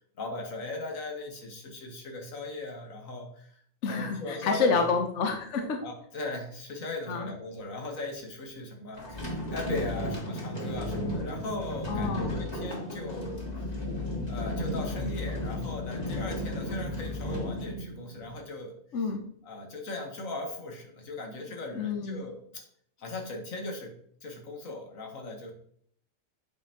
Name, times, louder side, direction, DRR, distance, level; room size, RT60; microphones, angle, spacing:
voice 1, 0.2-4.9 5.6-13.8 14.3-18.7 19.4-22.6 23.0-23.9 24.2-25.5, left 2 dB, 85° left, 2 dB, 1.7 m, -38 dB
voice 2, 3.8-5.8 7.1-7.3 11.9-12.4 18.9-19.2 21.7-22.3, left 4 dB, 65° left, 4 dB, 1.1 m, -29 dB
sound 1, 9.0-18.4, left 1 dB, 30° left, 1.8 m, -34 dB
8.2 x 5.2 x 2.9 m, 0.64 s
omnidirectional pair, 1.4 m